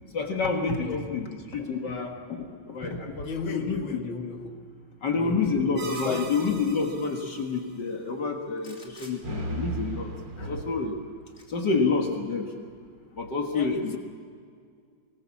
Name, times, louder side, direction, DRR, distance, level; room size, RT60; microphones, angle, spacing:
voice 1, 0.1-4.0 5.0-11.0 11.5-12.5 13.2-14.0, left 4 dB, 60° left, 3 dB, 2.3 m, -28 dB
voice 2, 0.8-1.1 3.2-4.6 5.2-6.4 13.5-14.0, left 5 dB, 80° left, 6 dB, 2.0 m, -35 dB
sound 1, 5.8-6.2 8.6-9.2 11.3-11.4, left 2 dB, 30° left, 3.2 m, -49 dB
sound 2, 5.8-7.4 9.2-10.8, right 3 dB, 65° right, 2.7 m, -37 dB
24.5 x 19.5 x 7.2 m, 2.2 s
omnidirectional pair, 2.2 m